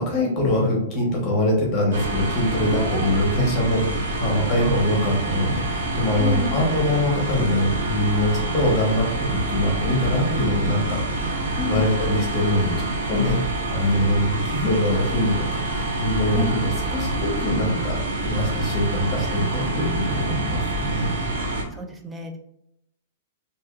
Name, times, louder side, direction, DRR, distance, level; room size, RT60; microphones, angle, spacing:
voice 1, 0.0-13.4 13.7-18.0 18.2-21.1, left 1 dB, 25° left, -1 dB, 1.1 m, -23 dB
sound 1, 1.9-21.6, right 2 dB, 80° right, 0.8 m, -27 dB
voice 2, 2.7-3.1 6.2-6.7 11.5-11.9 16.3-16.6 21.7-22.4, left 1 dB, 5° right, 4 dB, 0.4 m, -30 dB
2.7 x 2.7 x 3.7 m, 0.80 s
supercardioid pair, 165°, 0 cm